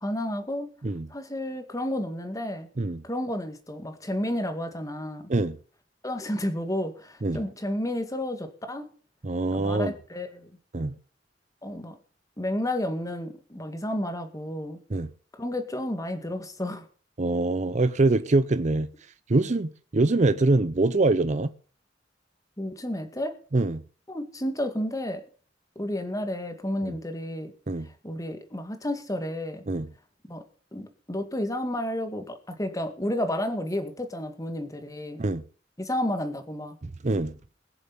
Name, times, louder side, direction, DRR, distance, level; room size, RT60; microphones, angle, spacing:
voice 1, 0.0-0.7 1.1-2.7 3.0-5.3 6.0-8.9 9.5-10.5 11.6-12.0 12.4-14.8 15.4-16.9 22.6-23.4 24.1-25.2 25.8-27.5 28.0-29.6 30.3-30.4 30.7-35.2 35.8-36.8, left 1 dB, 20° left, 2.0 m, -31 dB
voice 2, 9.2-9.9 10.7-11.0 14.9-15.1 17.2-18.9 19.3-21.5 23.5-23.8 26.8-27.0 27.7-27.9 29.7-29.9 35.2-35.4 36.8-37.3, right 2 dB, 40° right, 0.6 m, -24 dB
21.0 x 7.1 x 5.5 m
head